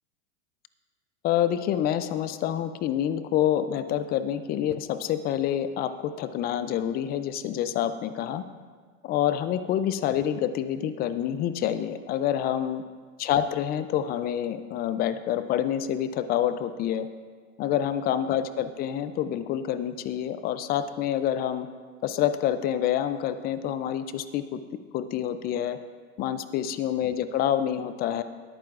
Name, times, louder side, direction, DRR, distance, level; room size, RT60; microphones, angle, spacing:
voice 1, 1.2-8.4 9.0-12.8 13.2-17.1 17.6-21.7 22.0-24.6 24.9-25.8 26.2-28.2, left 10 dB, 25° left, 12 dB, 0.4 m, -27 dB
18.5 x 9.0 x 2.5 m, 1.6 s
hypercardioid pair, 110°, 41 cm